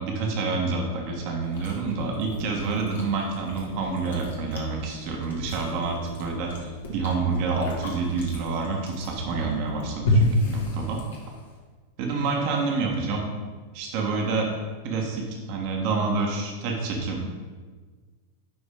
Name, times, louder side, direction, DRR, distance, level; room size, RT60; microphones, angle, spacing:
voice 1, 0.0-11.0 12.0-13.3 13.7-14.5 14.8-17.2, right 4 dB, 45° right, 0 dB, 1.3 m, -28 dB
Chewing mastication, 1.4-11.6, left 1 dB, 65° left, 1.6 m, -31 dB
sound 1, 1.5-10.8, right 1 dB, 5° right, 1.0 m, -43 dB
10.0 x 4.2 x 3.5 m, 1.4 s
figure-of-eight pair, 90°, 0 cm